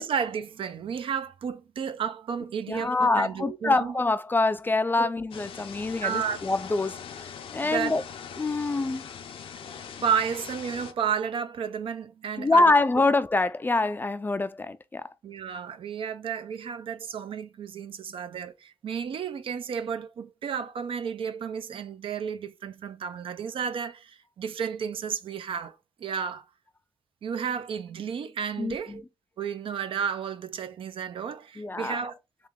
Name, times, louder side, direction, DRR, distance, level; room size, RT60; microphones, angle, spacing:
voice 1, 0.0-3.9 5.0-5.1 6.0-6.5 7.6-8.0 10.0-12.7 15.2-26.4 27.2-29.0 29.4-32.1, right 7 dB, 75° right, 0.5 m, -32 dB
voice 2, 2.7-7.0 7.5-8.0 8.4-9.1 12.4-15.0 28.6-29.0 31.6-32.0, left 3 dB, 20° left, 0.3 m, -25 dB
sound 1, 5.3-10.9, left 7 dB, 80° left, 0.6 m, -41 dB
3.5 x 3.4 x 3.6 m
cardioid pair, 90°, 9 cm